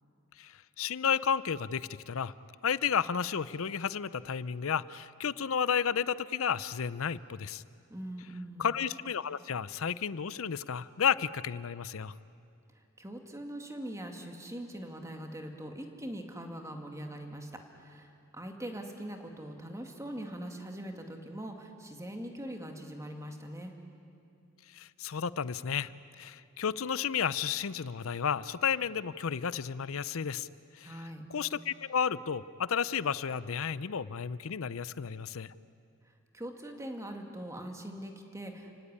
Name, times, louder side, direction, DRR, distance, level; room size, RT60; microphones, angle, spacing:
voice 1, 0.4-2.3 2.6-7.6 8.6-12.1 24.7-25.9 26.2-30.5 30.7-30.9 31.3-35.5, left 7 dB, 70° left, 17 dB, 0.6 m, -32 dB
voice 2, 7.9-8.7 12.7-17.5 17.8-23.7 30.8-31.2 36.0-38.7, right 1 dB, 15° right, 3 dB, 2.3 m, -42 dB
30.0 x 17.0 x 9.8 m, 2.5 s
head